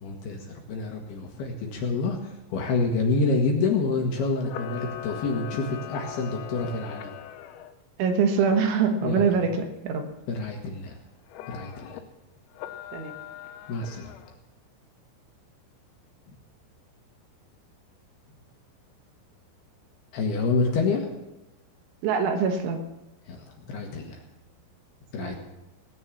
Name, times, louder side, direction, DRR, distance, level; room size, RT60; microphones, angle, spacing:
voice 1, 0.0-7.1 9.0-9.2 10.3-11.0 11.5-12.0 13.7-14.1 20.1-21.1 23.3-24.2 25.1-25.3, left 3 dB, 65° left, 1 dB, 2.9 m, -28 dB
Camera, 4.4-7.7 11.3-12.0 12.5-14.4, left 11 dB, 90° left, 3.6 m, -40 dB
voice 2, 8.0-10.1 12.9-13.1 22.0-22.8 25.2-25.4, right 5 dB, 70° right, 5 dB, 3.5 m, -24 dB
18.0 x 9.5 x 7.3 m, 0.98 s
omnidirectional pair, 5.9 m